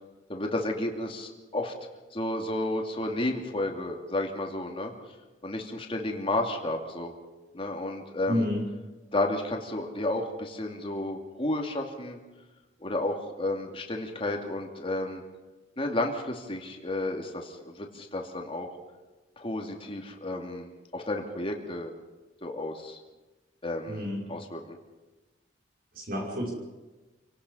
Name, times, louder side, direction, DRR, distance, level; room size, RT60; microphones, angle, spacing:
voice 1, 0.3-1.7 2.1-4.9 5.4-7.1 7.5-8.5 9.1-12.2 12.8-15.2 15.8-18.7 19.4-21.9 22.4-23.0 23.6-24.8, left 1 dB, 30° left, 2 dB, 2.6 m, -32 dB
voice 2, 8.3-8.6 23.9-24.2 26.0-26.5, left 1 dB, 55° right, -2 dB, 5.5 m, -29 dB
28.0 x 18.0 x 5.6 m, 1.2 s
head